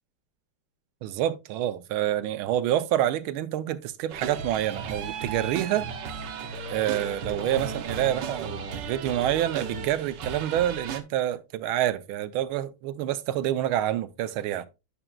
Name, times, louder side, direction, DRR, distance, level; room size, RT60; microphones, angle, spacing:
voice 1, 1.0-5.9 6.7-14.7, right 12 dB, 85° right, 1.5 m, -27 dB
sound 1, 4.1-11.0, right 5 dB, 65° right, 1.4 m, -35 dB
10.0 x 6.0 x 2.3 m
omnidirectional pair, 2.3 m